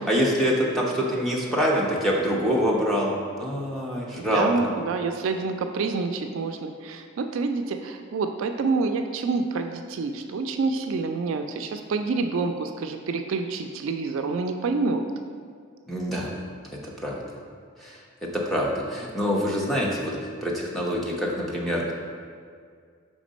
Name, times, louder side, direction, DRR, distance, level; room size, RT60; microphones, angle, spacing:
voice 1, 0.1-4.5 15.9-16.3 16.7-17.2 17.8-21.9, equal, ahead, -4 dB, 0.7 m, -25 dB
voice 2, 4.2-15.0, right 4 dB, 65° right, 6 dB, 0.3 m, -27 dB
5.1 x 3.6 x 5.1 m, 2.1 s
head